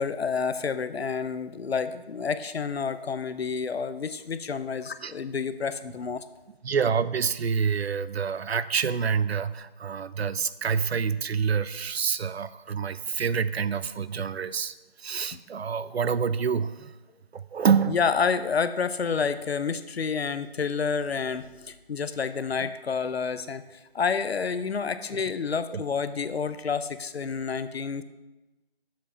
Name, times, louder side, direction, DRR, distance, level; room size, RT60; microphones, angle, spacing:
voice 1, 0.0-6.2 17.9-28.0, left 5 dB, 80° left, 12 dB, 0.7 m, -29 dB
voice 2, 6.6-16.9 17.3-18.0 25.7-25.8, right 6 dB, 80° right, 16 dB, 0.6 m, -27 dB
7.5 x 7.2 x 4.3 m, 1.1 s
figure-of-eight pair, 165°, 31 cm